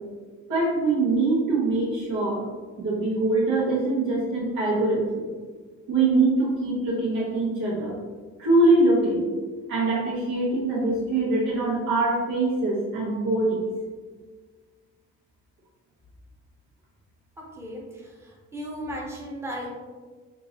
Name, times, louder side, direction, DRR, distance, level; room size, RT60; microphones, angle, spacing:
voice 1, 0.5-2.5 2.8-5.3 5.9-8.0 8.4-9.3 9.7-13.7, right 2 dB, 80° right, -7 dB, 1.1 m, -23 dB
voice 2, 17.6-19.7, equal, 10° right, -3 dB, 0.8 m, -36 dB
3.7 x 2.7 x 2.8 m, 1.5 s
cardioid pair, 90°, 30 cm